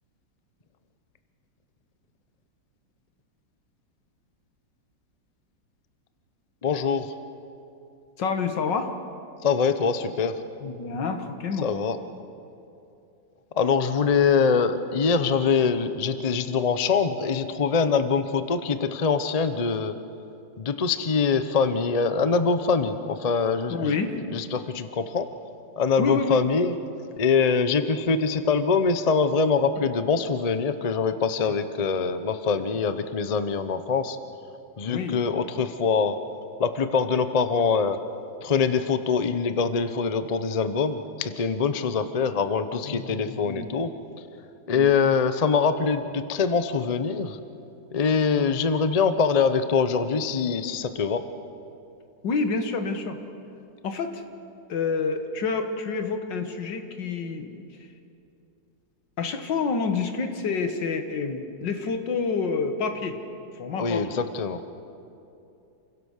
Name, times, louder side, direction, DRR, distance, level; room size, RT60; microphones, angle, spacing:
voice 1, 6.6-7.1 9.4-10.4 11.6-12.0 13.6-20.0 20.6-23.9 24.3-25.3 25.8-26.7 27.2-34.2 34.8-36.2 36.6-38.0 38.4-43.9 44.7-47.4 47.9-51.2 63.8-64.7, left 5 dB, 40° left, 10 dB, 0.5 m, -24 dB
voice 2, 8.2-8.9 10.6-11.7 17.9-18.0 23.7-24.2 26.0-26.4 34.9-35.2 42.9-43.7 44.7-44.9 52.2-53.2 53.8-54.2 54.7-57.6 59.2-63.2 63.6-64.1, left 4 dB, 80° left, 7 dB, 2.1 m, -28 dB
28.0 x 16.5 x 6.5 m, 2.7 s
omnidirectional pair, 1.9 m